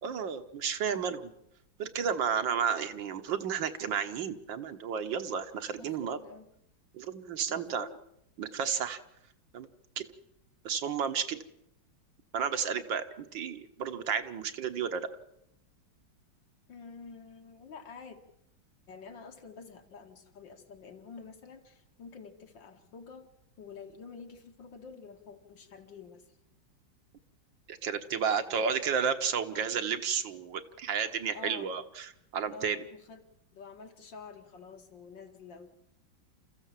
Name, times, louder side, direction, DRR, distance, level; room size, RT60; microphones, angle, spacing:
voice 1, 0.0-1.3 1.8-6.2 6.9-7.9 8.4-9.0 9.5-9.7 10.0-10.1 10.7-11.4 12.3-15.1 27.7-32.9, right 7 dB, 75° right, 8 dB, 2.0 m, -32 dB
voice 2, 5.8-6.5 7.5-8.0 16.7-18.2 18.9-23.3 23.6-26.2 28.5-28.7 31.3-31.8 32.4-33.2 33.5-35.8, left 5 dB, 70° left, 5 dB, 2.6 m, -48 dB
28.5 x 14.5 x 7.5 m, 0.80 s
omnidirectional pair, 2.1 m